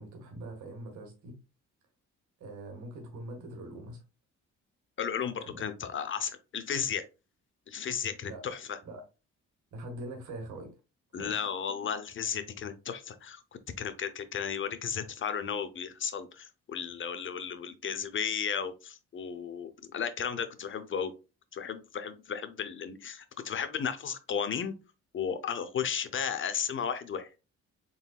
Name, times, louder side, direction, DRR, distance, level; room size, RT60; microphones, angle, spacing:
voice 1, 0.0-1.3 2.4-4.0 5.3-5.6 8.2-8.4 8.8-9.0 9.7-10.7 11.1-11.3, right 1 dB, 80° right, 1.7 m, -43 dB
voice 2, 5.0-7.0 7.7-8.8 11.1-13.4 13.8-21.1 21.5-24.7 25.1-27.3, left 7 dB, 40° left, 0.7 m, -34 dB
4.0 x 3.9 x 2.4 m
cardioid pair, 90°, 30 cm